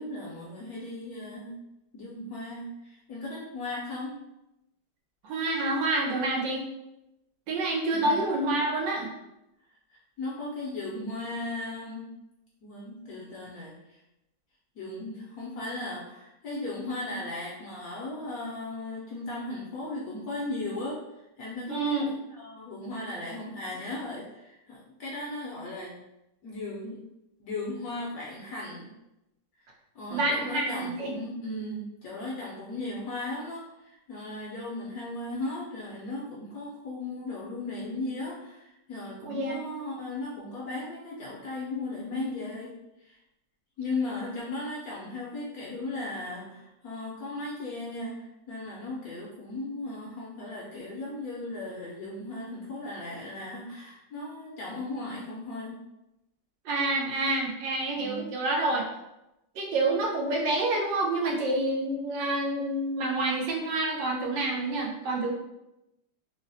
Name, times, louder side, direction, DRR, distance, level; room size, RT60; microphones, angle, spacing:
voice 1, 0.0-1.6 1.9-4.2 7.9-8.1 9.9-12.0 12.6-14.0 14.8-21.0 21.4-22.1 22.4-26.0 26.4-27.0 27.4-28.9 29.9-42.7 43.0-43.2 43.8-55.8 57.9-58.4, left 2 dB, 70° left, -5 dB, 0.9 m, -36 dB
voice 2, 5.2-6.7 7.5-9.1 21.7-22.1 30.1-31.1 39.2-39.7 56.6-58.9 59.5-65.3, right 2 dB, 90° right, 0 dB, 1.4 m, -28 dB
3.8 x 2.1 x 2.6 m, 0.92 s
omnidirectional pair, 1.9 m